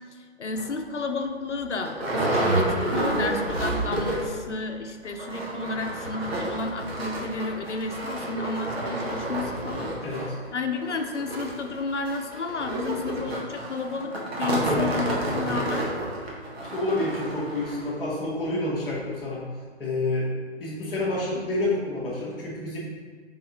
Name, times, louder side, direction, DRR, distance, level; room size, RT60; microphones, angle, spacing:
voice 1, 0.4-10.2 10.5-15.9, left 3 dB, 85° left, 5 dB, 0.8 m, -32 dB
sound 1, 0.5-0.7 1.2-1.3 1.5-4.4 4.7-4.8 5.1-17.9 18.5-18.6 18.9-19.0, right 1 dB, 60° right, 1.8 m, -29 dB
voice 2, 10.0-10.3 14.7-14.9 16.6-19.4 19.8-20.3 20.6-22.8, left 2 dB, ahead, -17 dB, 0.6 m, -29 dB
7.3 x 4.1 x 3.9 m, 1.5 s
figure-of-eight pair, 145°, 34 cm